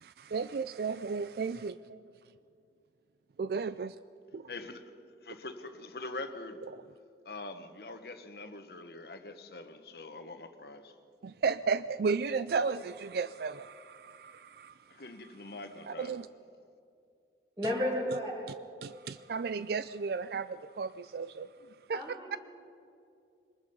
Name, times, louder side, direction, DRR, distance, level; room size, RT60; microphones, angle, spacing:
voice 1, 0.0-2.0 3.4-4.0 4.3-4.5 11.2-15.0 15.8-16.3 18.8-21.5 21.9-22.0 22.3-22.4, right 5 dB, 60° right, 0.4 m, -34 dB
voice 2, 4.5-4.9 5.2-6.6 7.2-11.0 14.9-16.2, left 2 dB, 60° left, 1.2 m, -44 dB
voice 3, 17.6-18.4 21.9-22.4, left 1 dB, 25° right, 6.1 m, -32 dB
23.5 x 20.5 x 5.5 m
head